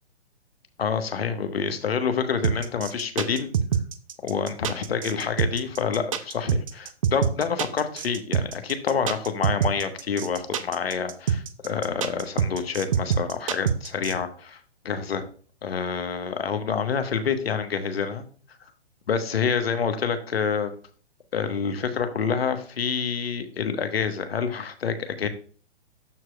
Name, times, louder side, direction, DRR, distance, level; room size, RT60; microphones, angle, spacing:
voice 1, 0.8-3.5 4.2-14.6 14.8-15.2 15.6-18.3 19.1-20.7 21.3-25.3, left 6 dB, 60° left, 8 dB, 1.3 m, -27 dB
sound 1, 2.4-14.1, right 8 dB, 30° right, 0.5 m, -25 dB
13.0 x 4.7 x 2.3 m, 0.41 s
figure-of-eight pair, 125°, 34 cm